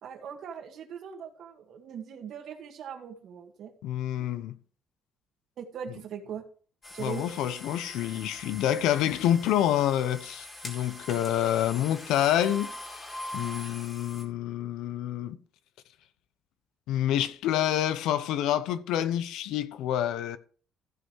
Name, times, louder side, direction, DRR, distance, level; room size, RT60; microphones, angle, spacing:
voice 1, 0.0-3.7 4.2-4.3 5.6-6.4 6.9-7.3, right 7 dB, 50° right, 1.9 m, -40 dB
voice 2, 3.8-4.5 7.0-12.7 13.3-15.4 16.9-20.4, left 11 dB, 75° left, 0.9 m, -27 dB
sound 1, 6.8-14.2, left 1 dB, 20° left, 2.3 m, -43 dB
15.0 x 5.5 x 4.8 m
cardioid pair, 180°, 0 cm